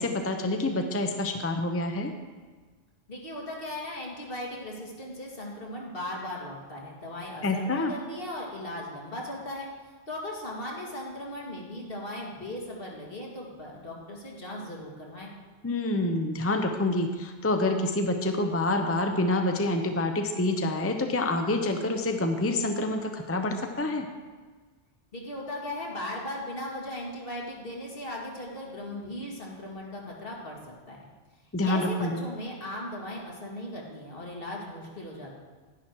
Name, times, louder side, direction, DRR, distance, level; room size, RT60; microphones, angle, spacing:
voice 1, 0.0-2.1 7.4-7.9 15.6-24.1 31.5-32.2, left 2 dB, 15° left, 5 dB, 0.6 m, -27 dB
voice 2, 3.1-9.7 10.1-15.3 25.1-31.0 31.7-35.3, left 1 dB, 65° left, -2 dB, 2.3 m, -38 dB
10.5 x 10.0 x 4.6 m, 1.4 s
omnidirectional pair, 1.0 m